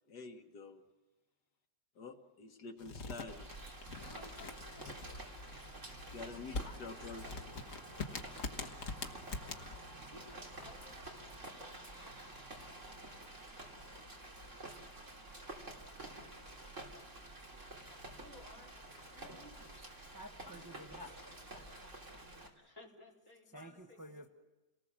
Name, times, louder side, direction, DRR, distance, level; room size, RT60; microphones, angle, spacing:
voice 1, 0.1-0.8 2.0-3.5 6.1-7.2, left 4 dB, 70° left, 5 dB, 2.0 m, -48 dB
sound 1, 2.8-11.1, left 3 dB, 50° left, 1.8 m, -45 dB
Rain, 3.3-22.5, right 1 dB, 45° right, 3.6 m, -50 dB
voice 2, 4.0-4.9 6.2-7.3 10.1-12.0 18.1-18.7 19.1-19.8 20.4-21.1 22.5-24.3, left 1 dB, 10° left, -3 dB, 4.7 m, -58 dB
voice 3, 20.1-21.9 22.4-22.5 23.5-24.3, equal, 15° right, 0 dB, 1.0 m, -52 dB
29.0 x 19.0 x 7.5 m, 1.2 s
omnidirectional pair, 1.8 m